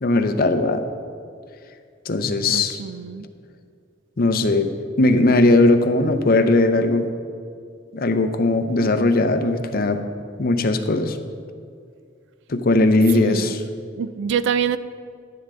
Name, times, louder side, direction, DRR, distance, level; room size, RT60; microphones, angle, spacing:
voice 1, 0.0-0.8 2.1-2.8 4.2-4.7 5.0-7.1 7.9-10.0 10.4-11.2 12.5-13.6, left 2 dB, 50° left, 0.6 m, -18 dB
voice 2, 2.5-3.3 13.1-13.6 14.0-14.8, right 7 dB, 70° right, 0.4 m, -25 dB
11.5 x 9.4 x 3.6 m
head